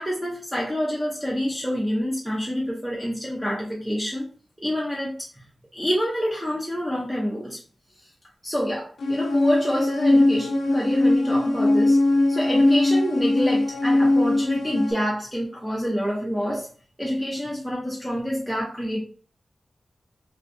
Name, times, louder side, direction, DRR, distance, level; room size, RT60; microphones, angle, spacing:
voice 1, 0.0-4.3 4.6-5.4 5.7-7.6 8.4-12.0 12.3-16.7 17.0-19.0, equal, 5° right, -5 dB, 0.7 m, -27 dB
sound 1, 9.0-14.9, left 2 dB, 80° left, 0.4 m, -20 dB
3.0 x 2.6 x 2.5 m, 0.42 s
wide cardioid pair, 90°, 0 cm